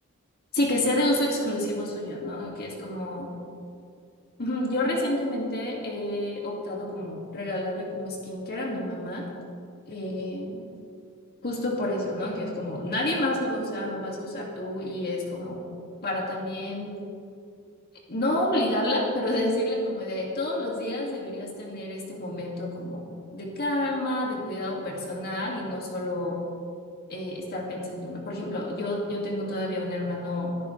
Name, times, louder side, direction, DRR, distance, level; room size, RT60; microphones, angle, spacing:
voice 1, 0.5-3.3 4.4-9.3 9.9-10.6 11.4-15.6 16.0-17.0 18.1-23.1 23.3-26.4 27.1-30.5, left 1 dB, 45° left, -2 dB, 2.4 m, -29 dB
24.5 x 12.0 x 3.4 m, 2.3 s
head